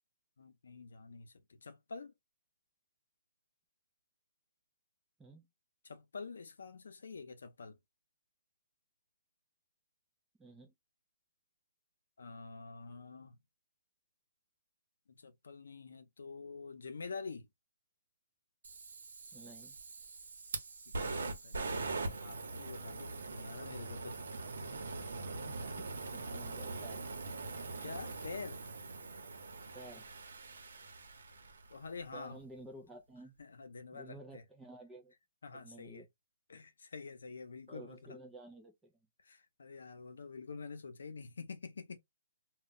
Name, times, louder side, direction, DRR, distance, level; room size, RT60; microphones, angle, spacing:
voice 1, 0.4-2.1 5.8-7.8 12.2-13.4 15.1-17.5 20.9-24.2 27.8-28.6 31.7-32.4 33.4-34.4 35.4-36.0 36.5-38.2 39.2-42.0, left 4 dB, 75° left, 0.6 m, -47 dB
voice 2, 10.4-10.8 19.3-19.8 25.5-27.0 29.7-30.1 32.1-33.4 33.9-35.1 35.5-36.1 37.7-39.1, right 2 dB, 5° right, 0.4 m, -53 dB
Fire, 18.6-31.8, right 3 dB, 75° right, 0.8 m, -42 dB
2.3 x 2.1 x 3.7 m
hypercardioid pair, 180°, 0 cm